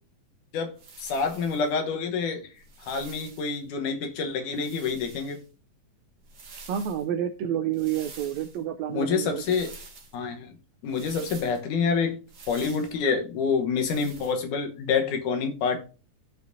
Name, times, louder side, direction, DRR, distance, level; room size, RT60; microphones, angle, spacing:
voice 1, 0.5-2.5 2.8-5.4 8.9-9.7 10.1-10.5 10.8-12.2 12.5-15.8, left 5 dB, 75° left, 2.6 m, -27 dB
sound 1, 0.8-1.7 2.6-3.6 4.5-5.4 6.2-7.0 7.7-8.6 9.3-10.1 10.9-11.6 12.3-13.0 13.8-14.4, right 4 dB, 40° right, 1.5 m, -47 dB
voice 2, 6.7-9.6, right 10 dB, 80° right, 1.6 m, -29 dB
15.0 x 5.2 x 2.6 m
omnidirectional pair, 3.6 m